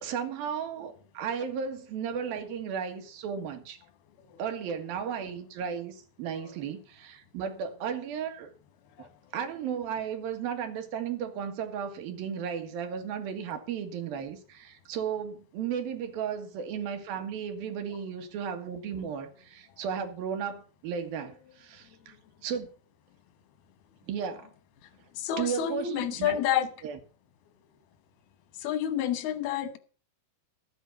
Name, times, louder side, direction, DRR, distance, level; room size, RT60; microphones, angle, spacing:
voice 1, 0.0-3.8 4.4-8.5 9.0-22.2 22.4-22.7 24.1-24.5 25.4-27.0, right 7 dB, 75° right, 3.3 m, -35 dB
voice 2, 25.2-26.7 28.6-29.8, left 10 dB, 90° left, 3.1 m, -29 dB
13.0 x 8.2 x 5.9 m
omnidirectional pair, 4.2 m